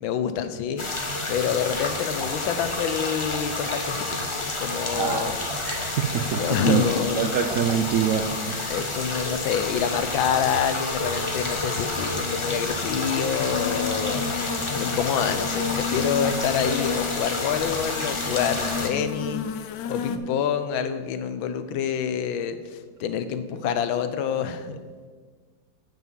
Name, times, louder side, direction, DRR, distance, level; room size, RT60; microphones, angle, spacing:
voice 1, 0.0-0.9 1.3-4.2 4.6-5.4 6.4-7.2 8.7-14.3 14.7-19.5 19.9-24.8, left 8 dB, 85° left, 10 dB, 1.5 m, -27 dB
sound 1, 0.8-18.9, left 2 dB, 35° left, 0.4 m, -29 dB
voice 2, 5.0-6.8 7.1-8.8, right 8 dB, 85° right, 5 dB, 0.7 m, -26 dB
sound 2, 13.5-20.2, left 7 dB, 70° left, 1.1 m, -32 dB
7.2 x 5.9 x 7.3 m, 1.5 s
omnidirectional pair, 2.1 m